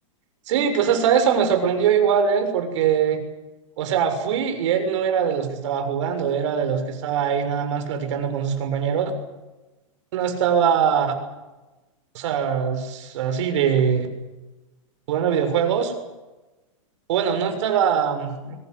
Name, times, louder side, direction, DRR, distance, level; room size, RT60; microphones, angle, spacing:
voice 1, 0.5-3.2 3.8-9.1 10.1-11.1 12.1-14.1 15.1-15.9 17.1-18.6, right 7 dB, 60° right, 7 dB, 6.7 m, -22 dB
25.5 x 23.5 x 8.1 m, 1.1 s
supercardioid pair, 145°, 17 cm